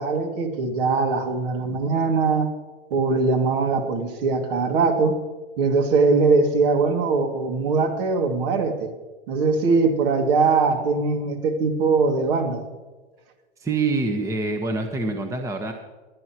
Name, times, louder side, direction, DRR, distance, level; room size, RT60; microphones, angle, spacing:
voice 1, 0.0-2.5 2.9-5.1 5.6-8.9 9.3-12.6, right 4 dB, 55° right, 4 dB, 2.5 m, -21 dB
voice 2, 13.6-15.7, right 3 dB, 10° right, 4 dB, 1.2 m, -25 dB
23.0 x 9.5 x 3.0 m, 1.2 s
hypercardioid pair, 125°, 33 cm